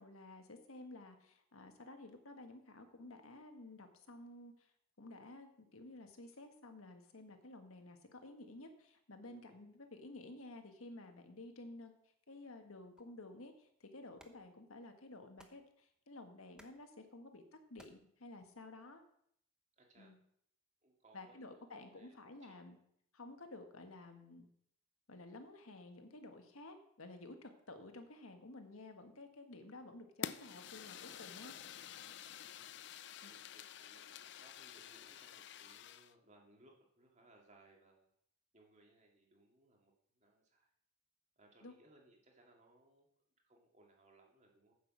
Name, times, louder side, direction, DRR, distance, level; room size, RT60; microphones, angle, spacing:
voice 1, 0.0-4.7 5.0-11.9 12.3-17.4 17.7-19.0 20.0-20.2 21.1-22.8 23.1-24.5 25.1-31.6 33.2-33.3 41.6-41.7, left 2 dB, 85° left, 6 dB, 1.6 m, -53 dB
voice 2, 9.2-9.6 19.8-20.2 20.8-22.6 32.6-38.1 38.5-40.7 41.4-43.1 43.4-44.7, right 2 dB, 35° right, 0 dB, 2.2 m, -67 dB
sound 1, 13.0-19.0, right 1 dB, 5° right, 0.8 m, -69 dB
Fire, 30.2-36.1, left 8 dB, 55° left, 0.5 m, -49 dB
9.4 x 6.1 x 7.4 m, 0.69 s
head